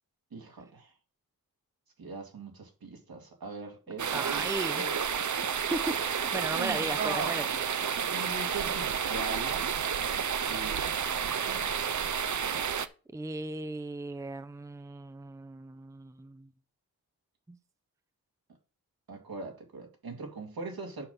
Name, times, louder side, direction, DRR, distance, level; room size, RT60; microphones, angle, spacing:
voice 1, 0.3-0.9 2.0-5.1 6.3-7.4 8.0-9.6 10.3-10.8 19.1-21.0, right 3 dB, 75° right, 2.3 m, -40 dB
sound 1, 4.0-12.9, right 7 dB, 55° right, 0.7 m, -31 dB
voice 2, 4.1-4.8 5.7-5.8 6.1-7.5 13.1-16.5 17.5-17.6, right 2 dB, 10° right, 0.6 m, -36 dB
6.9 x 5.4 x 5.5 m
cardioid pair, 50°, 36 cm